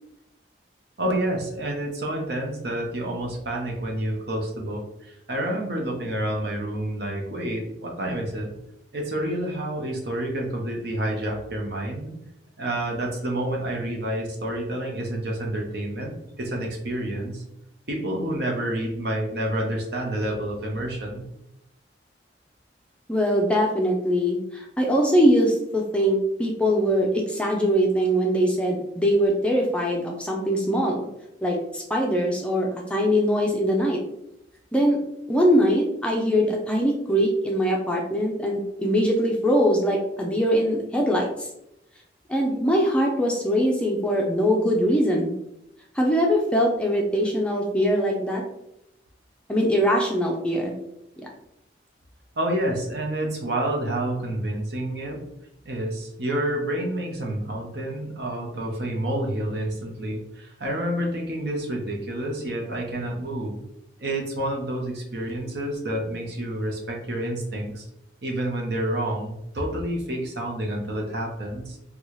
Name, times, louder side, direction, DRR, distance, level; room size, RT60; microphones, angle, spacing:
voice 1, 1.0-8.5 8.9-12.1 12.6-17.4 17.9-21.3 52.4-55.2 55.6-63.6 64.0-67.8 68.2-71.8, right 1 dB, 65° right, 0 dB, 0.8 m, -29 dB
voice 2, 23.1-31.1 31.4-34.0 34.7-35.0 35.3-41.3 42.3-45.3 46.0-48.4 49.5-50.8 51.2-51.3, equal, 5° left, -1 dB, 0.4 m, -22 dB
4.0 x 2.3 x 3.1 m, 0.81 s
head